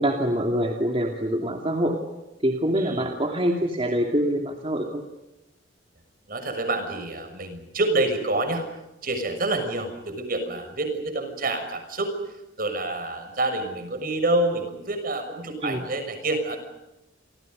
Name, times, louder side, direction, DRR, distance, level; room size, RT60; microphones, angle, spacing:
voice 1, 0.0-2.0 2.4-5.0 15.6-15.8, equal, 30° right, 2 dB, 2.7 m, -25 dB
voice 2, 2.8-3.1 6.3-8.6 9.0-12.1 12.6-16.6, right 2 dB, 50° right, 7 dB, 6.4 m, -27 dB
30.0 x 26.0 x 5.4 m, 0.98 s
head